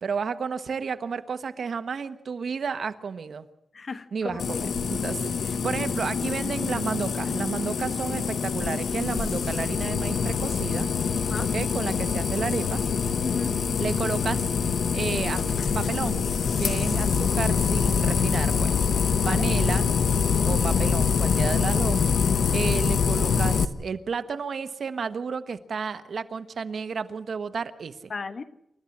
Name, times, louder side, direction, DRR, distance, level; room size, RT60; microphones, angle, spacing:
voice 1, 0.0-3.5 4.1-10.9 11.4-12.8 13.8-14.5 14.9-16.3 16.6-18.7 19.2-19.9 20.3-22.0 22.5-28.1, right 5 dB, 60° right, 1.2 m, -32 dB
voice 2, 3.7-4.6 11.3-11.5 13.2-13.6 19.2-19.4 28.1-28.4, left 4 dB, 45° left, 1.3 m, -34 dB
sound 1, 4.3-18.8, equal, 15° left, 6.0 m, -49 dB
sound 2, 4.4-23.7, left 6 dB, 85° left, 1.0 m, -25 dB
28.5 x 13.0 x 8.5 m
wide cardioid pair, 130°, 0 cm